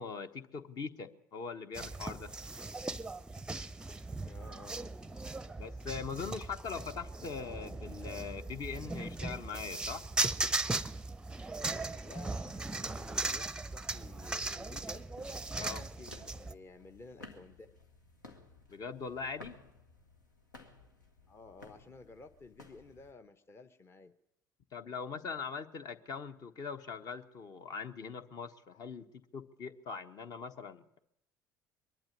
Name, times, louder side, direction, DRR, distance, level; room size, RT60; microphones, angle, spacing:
voice 1, 0.0-2.3 5.6-10.1 15.5-15.8 18.7-19.6 24.7-29.1 29.3-31.0, left 5 dB, 40° left, 9 dB, 1.2 m, -41 dB
sound 1, 1.7-16.5, right 2 dB, 10° right, 0.7 m, -38 dB
voice 2, 4.2-5.0 12.0-15.1 15.6-17.8 21.3-24.1, left 3 dB, 25° left, 8 dB, 0.9 m, -53 dB
sound 2, 14.2-23.1, left 2 dB, 80° left, 1.7 m, -56 dB
22.5 x 12.0 x 9.6 m, 0.79 s
figure-of-eight pair, 60°, 10 cm